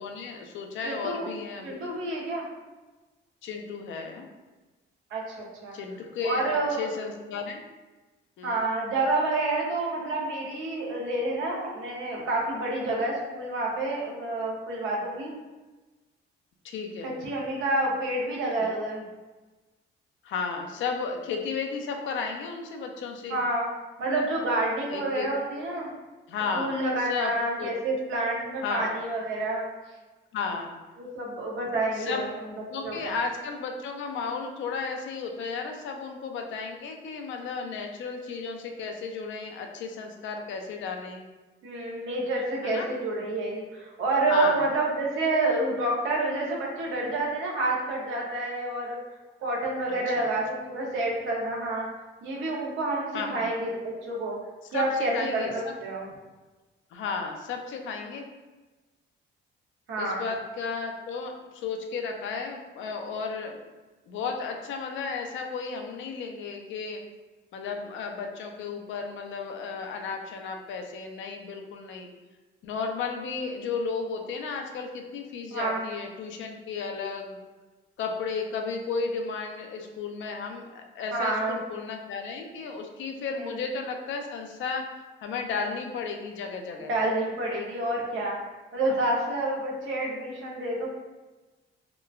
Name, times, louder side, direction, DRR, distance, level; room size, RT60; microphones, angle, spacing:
voice 1, 0.0-1.9 3.4-4.3 5.7-7.6 8.4-8.6 16.6-17.1 20.2-23.4 24.9-25.3 26.3-26.7 27.0-27.3 27.6-27.7 28.6-28.9 30.3-30.7 31.9-41.3 42.6-42.9 44.3-44.6 49.9-50.3 53.1-53.5 54.7-55.7 56.9-58.3 60.0-63.6 64.1-67.0 67.5-72.1 72.6-77.4 78.0-84.8 85.2-86.9, left 5 dB, 75° left, 3 dB, 0.4 m, -34 dB
voice 2, 0.8-1.3 1.6-2.5 5.1-5.8 6.2-6.9 8.4-15.3 17.0-19.1 23.3-23.7 24.0-25.9 26.5-29.7 31.0-32.3 32.8-33.1 41.6-49.0 49.4-51.9 52.2-54.4 54.7-56.1 59.9-60.3 75.5-75.8 81.1-81.6 83.3-83.5 86.9-88.4 88.7-90.9, right 2 dB, 80° right, -3 dB, 0.7 m, -28 dB
2.9 x 2.1 x 2.3 m, 1.2 s
cardioid pair, 90°, 20 cm